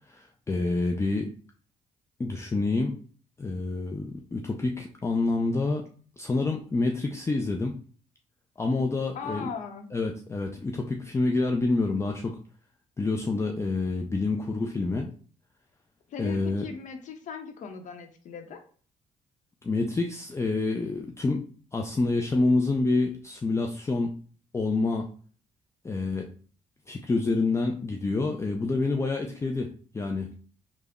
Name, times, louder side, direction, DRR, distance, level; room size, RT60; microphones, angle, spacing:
voice 1, 0.1-1.3 2.2-3.0 3.4-5.8 6.2-7.7 8.6-9.5 9.9-12.4 13.0-15.1 16.2-16.7 19.6-21.4 21.7-24.2 24.5-25.1 25.8-26.3 26.9-30.3, left 3 dB, 20° left, 1 dB, 0.4 m, -27 dB
voice 2, 9.1-9.9 16.1-18.6, left 6 dB, 65° left, 6 dB, 0.7 m, -38 dB
3.4 x 2.0 x 3.5 m, 0.43 s
cardioid pair, 70°, 13 cm